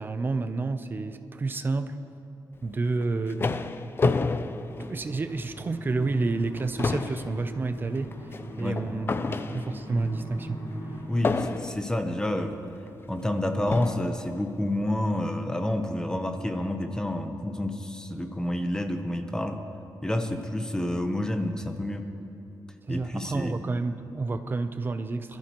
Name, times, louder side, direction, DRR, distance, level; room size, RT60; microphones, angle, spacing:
voice 1, 0.0-2.0 2.6-3.5 4.9-8.1 8.6-9.1 9.5-10.6 22.9-25.4, right 3 dB, 25° right, 0.6 m, -29 dB
sound 1, 2.9-5.5 6.0-6.1 6.5-10.0 11.2-12.0 12.9-13.0 13.7-14.2, left 3 dB, 30° left, 0.4 m, -30 dB
sound 2, 3.2-11.0, equal, 85° left, 3.1 m, -41 dB
voice 2, 11.1-12.6 13.1-19.7 20.0-22.0 22.9-23.6, left 1 dB, 10° left, 0.8 m, -29 dB
22.0 x 13.5 x 3.0 m
wide cardioid pair, 140°, 7 cm